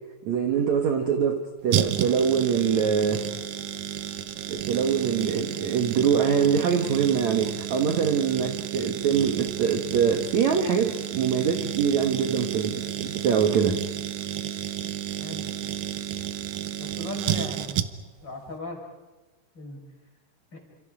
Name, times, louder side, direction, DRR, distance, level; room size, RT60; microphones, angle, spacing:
voice 1, 0.2-3.2 4.5-13.8, right 7 dB, 55° right, 4 dB, 2.3 m, -24 dB
sound 1, 1.7-18.2 18.5-18.6, right 11 dB, 75° right, 1.8 m, -32 dB
voice 2, 15.2-15.5 16.8-17.8 18.2-18.8 19.5-19.8 20.5-20.6, left 2 dB, 25° left, 1 dB, 5.6 m, -37 dB
30.0 x 27.5 x 5.0 m, 1.2 s
omnidirectional pair, 4.6 m